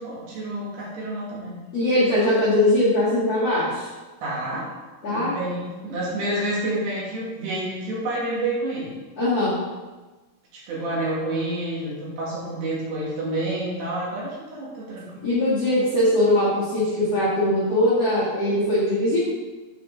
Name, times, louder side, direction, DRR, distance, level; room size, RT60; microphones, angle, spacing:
voice 1, 0.0-1.5 4.2-4.7 5.1-9.0 10.5-15.8, right 1 dB, 65° right, -6 dB, 3.7 m, -29 dB
voice 2, 1.7-3.9 5.0-5.3 9.2-9.6 15.2-19.2, left 1 dB, 55° left, -10 dB, 1.9 m, -21 dB
9.6 x 4.9 x 3.7 m, 1.2 s
omnidirectional pair, 5.6 m